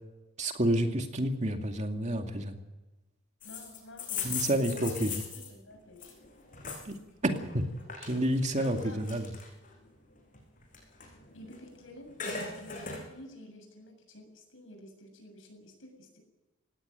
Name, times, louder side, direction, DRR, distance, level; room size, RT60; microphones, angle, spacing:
voice 1, 0.4-2.6 4.2-5.2 6.8-7.0 7.2-7.7 8.0-9.3, right 1 dB, 35° right, 4 dB, 2.3 m, -29 dB
voice 2, 3.4-6.1 8.6-9.0 10.9-16.2, left 1 dB, 75° left, 4 dB, 7.4 m, -51 dB
sound 1, 3.4-7.0 7.3-9.7 10.2-11.7 12.0-13.0, left 6 dB, 45° left, 5.9 m, -39 dB
19.5 x 17.0 x 9.1 m, 1.1 s
head